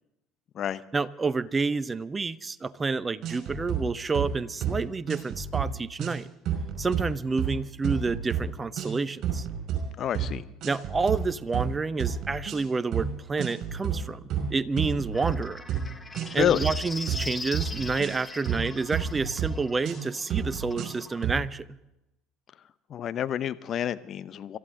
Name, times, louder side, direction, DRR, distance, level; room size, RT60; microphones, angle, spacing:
voice 1, 0.9-6.3 6.8-9.5 10.6-14.2 14.5-15.6 16.3-21.8, right 4 dB, 25° right, 16 dB, 0.7 m, -29 dB
sound 1, 3.2-3.8 4.1-4.3 4.6-4.8 5.1-5.7 6.0-6.2 6.5-7.1 7.4-7.6 7.8-8.5 8.8-8.9 9.2-9.8 10.1-10.3 10.6-11.2 11.5-11.7 12.0-12.6 12.9-13.1 13.4-14.0 14.3-15.4 15.7-15.9 16.1-16.7 17.1-17.2 17.5-18.7 18.9-19.5 19.8-20.0 20.3-21.0 21.2-21.4, right 9 dB, 50° right, 5.5 m, -30 dB
voice 2, 10.0-10.4 16.3-16.7 22.9-24.6, left 10 dB, 45° left, 14 dB, 0.8 m, -28 dB
sound 2, 15.1-21.2, left 3 dB, 20° left, 1.3 m, -40 dB
26.0 x 14.0 x 3.8 m, 0.93 s
hypercardioid pair, 65°, 0 cm